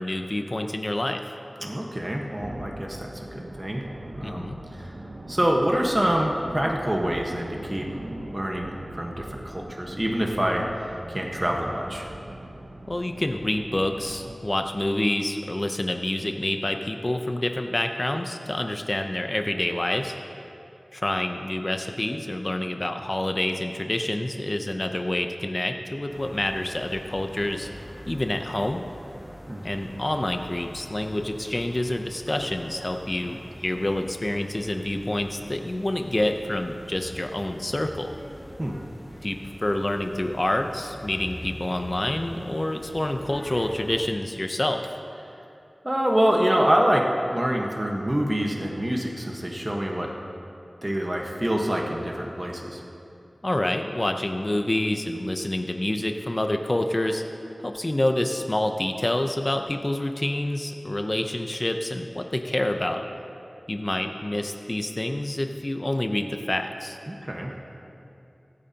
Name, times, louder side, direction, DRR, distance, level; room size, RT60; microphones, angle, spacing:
voice 1, 0.0-1.3 4.2-4.6 12.9-20.1 20.9-27.7 28.1-28.8 29.6-38.1 39.2-44.9 53.4-57.2 57.6-63.0 63.7-67.0, left 1 dB, 35° left, 5 dB, 0.7 m, -27 dB
voice 2, 1.6-3.8 4.1-5.0 5.3-12.1 29.5-29.7 38.6-38.7 45.8-50.1 50.8-52.8 67.1-67.5, equal, 25° right, 0 dB, 1.3 m, -26 dB
sound 1, 2.4-14.3, right 1 dB, 90° right, 1.1 m, -41 dB
Residential staircase room tone woman speaking distant, 26.1-44.1, equal, ahead, 0.8 m, -43 dB
22.5 x 8.9 x 2.9 m, 2.7 s
wide cardioid pair, 65°, 0 cm